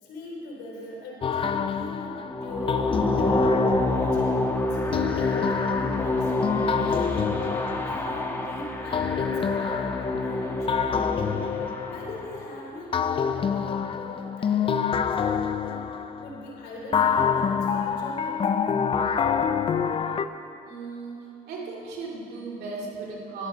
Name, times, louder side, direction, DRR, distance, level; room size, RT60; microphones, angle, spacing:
voice 1, 0.0-3.4 3.8-7.3 7.6-11.4 11.9-15.9 16.2-18.6 21.0-21.1, left 2 dB, 80° left, -3 dB, 3.2 m, -41 dB
sound 1, 1.2-4.3 4.9-8.5 8.9-12.5 12.9-16.4 16.9-20.3, left 7 dB, 30° left, 0.5 m, -27 dB
sound 2, 2.2-12.4, left 1 dB, 15° left, 1.2 m, -28 dB
voice 2, 20.6-23.5, right 3 dB, 75° right, -2 dB, 2.4 m, -36 dB
11.5 x 9.4 x 5.1 m, 2.5 s
cardioid pair, 110°, 17 cm